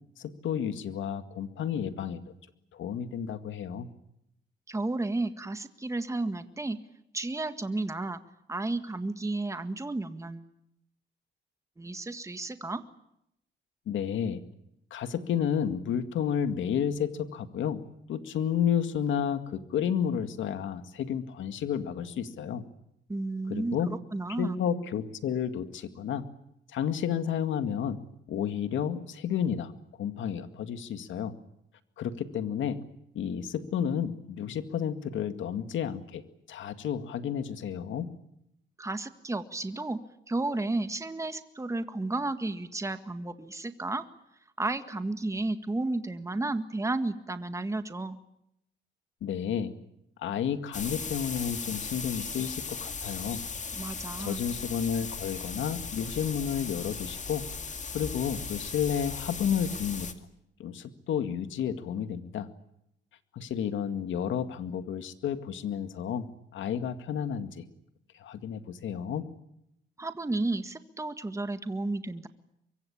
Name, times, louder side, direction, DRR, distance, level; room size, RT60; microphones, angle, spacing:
voice 1, 0.2-2.2 2.7-3.9 13.9-14.4 14.9-17.8 18.1-22.6 23.5-23.9 24.4-26.3 26.7-28.0 28.3-29.7 30.0-31.4 32.0-32.8 33.1-36.2 36.5-38.1 49.2-49.7 50.2-53.4 54.2-57.4 57.9-60.1 60.6-62.5 63.3-66.3 66.5-67.6 68.2-69.3, left 8 dB, 85° left, 9 dB, 2.1 m, -31 dB
voice 2, 4.7-6.8 7.1-8.2 8.5-10.5 11.8-12.8 23.1-24.6 38.8-40.0 40.3-44.0 44.6-48.2 53.7-54.5 70.0-72.3, right 2 dB, 15° right, 9 dB, 1.7 m, -32 dB
sound 1, 50.7-60.1, left 5 dB, 40° left, 2.4 m, -37 dB
24.0 x 23.5 x 8.7 m, 0.79 s
cardioid pair, 95°, 19 cm